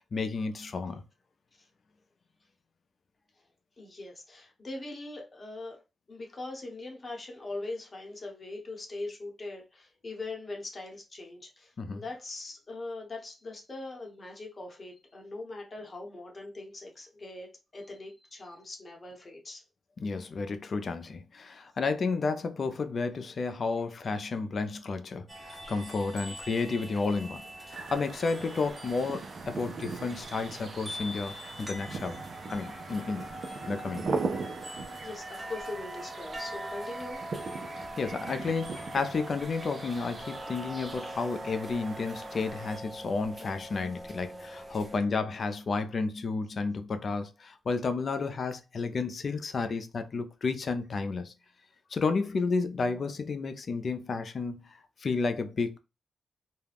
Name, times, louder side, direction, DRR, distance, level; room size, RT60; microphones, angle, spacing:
voice 1, 0.1-1.0 11.8-12.0 20.0-32.2 32.5-33.3 33.7-34.1 37.8-51.3 51.9-55.8, left 4 dB, 50° left, 0.4 m, -32 dB
voice 2, 3.8-5.8 6.1-19.6 25.6-25.7 27.8-27.9 34.6-37.4 49.6-49.8, left 2 dB, 35° left, 0.8 m, -41 dB
sound 1, 25.3-45.0, right 1 dB, 15° right, 0.6 m, -43 dB
sound 2, 27.7-42.8, right 4 dB, 55° right, 0.4 m, -40 dB
2.3 x 2.2 x 3.3 m
wide cardioid pair, 115°, 0 cm